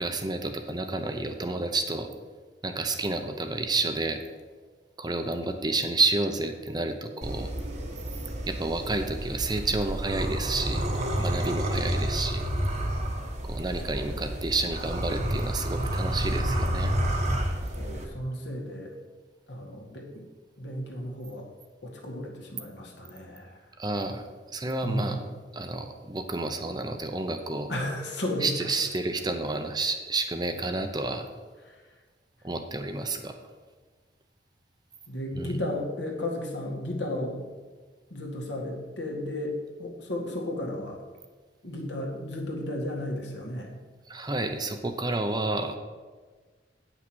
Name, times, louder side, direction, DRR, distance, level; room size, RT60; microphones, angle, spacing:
voice 1, 0.0-2.1 2.6-4.2 5.0-7.5 8.5-10.8 11.2-12.4 13.4-16.9 23.8-25.2 25.5-27.7 28.4-31.3 32.4-33.3 35.3-35.5 44.1-45.8, right 2 dB, 25° right, 6 dB, 0.7 m, -30 dB
sound 1, 7.2-18.0, right 1 dB, 40° right, 1.2 m, -30 dB
voice 2, 13.9-14.2 17.8-19.0 19.5-20.3 20.6-21.5 21.8-23.7 24.8-25.3 27.7-28.7 31.6-31.8 35.1-37.4 38.1-41.0 41.6-43.7, left 1 dB, 75° left, 0 dB, 2.0 m, -34 dB
8.8 x 6.0 x 6.2 m, 1.4 s
head